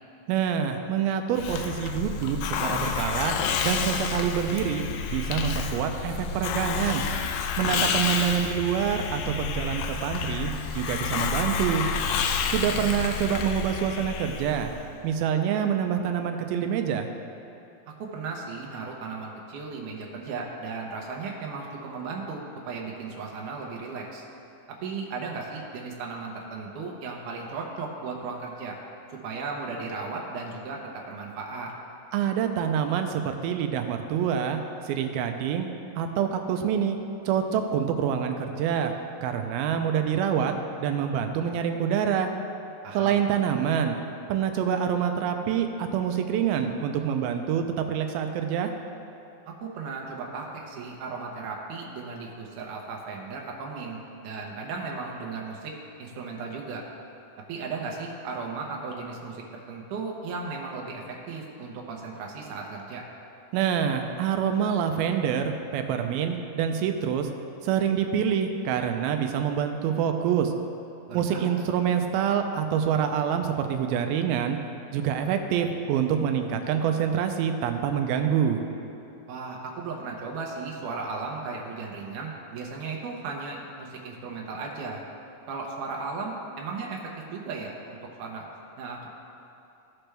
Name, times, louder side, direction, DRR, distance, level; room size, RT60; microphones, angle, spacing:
voice 1, 0.3-3.3 3.6-4.8 5.1-7.0 7.6-11.8 12.5-14.7 15.0-17.1 32.1-34.6 34.9-35.7 36.0-37.0 37.3-38.9 39.2-40.5 40.8-42.3 42.9-44.0 44.3-48.7 63.5-67.3 67.6-70.5 71.1-74.6 74.9-78.6, right 8 dB, 85° right, 6 dB, 2.5 m, -26 dB
Hiss, 1.4-14.9, left 6 dB, 80° left, 2.1 m, -29 dB
voice 2, 18.0-24.2 24.8-28.8 29.1-31.7 42.8-43.2 49.6-55.7 56.0-56.8 57.5-63.0 71.1-71.6 79.3-85.0 85.5-87.0 87.3-88.5 88.8-89.1, right 4 dB, 70° right, -1 dB, 2.2 m, -36 dB
15.5 x 6.0 x 3.3 m, 2.9 s
omnidirectional pair, 4.3 m